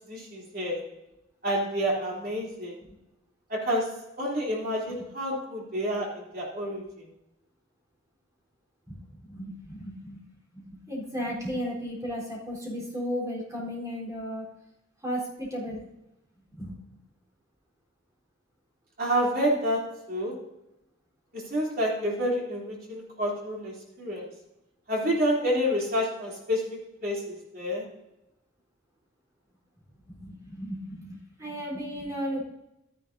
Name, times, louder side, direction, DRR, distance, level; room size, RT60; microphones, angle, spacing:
voice 1, 0.1-0.8 1.4-2.7 3.5-6.8 19.0-20.3 21.3-24.2 24.9-26.7 27.0-27.8, equal, 50° right, -3 dB, 3.2 m, -29 dB
voice 2, 8.9-10.2 10.5-14.4 15.0-15.9 16.5-16.7 30.1-32.4, equal, 15° right, -3 dB, 4.0 m, -35 dB
12.5 x 10.5 x 2.7 m, 0.90 s
head